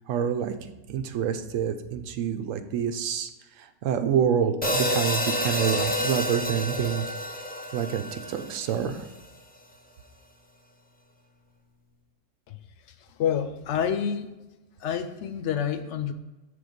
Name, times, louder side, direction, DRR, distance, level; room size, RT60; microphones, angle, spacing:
voice 1, 0.1-0.6 0.9-3.3 3.6-7.1 7.7-9.1, right 8 dB, 85° right, 8 dB, 1.0 m, -27 dB
sound 1, 4.6-9.0, equal, 15° left, 0.4 m, -29 dB
voice 2, 13.0-14.3 14.8-16.1, left 8 dB, 70° left, 9 dB, 0.8 m, -28 dB
6.9 x 3.4 x 5.1 m, 1.0 s
omnidirectional pair, 1.3 m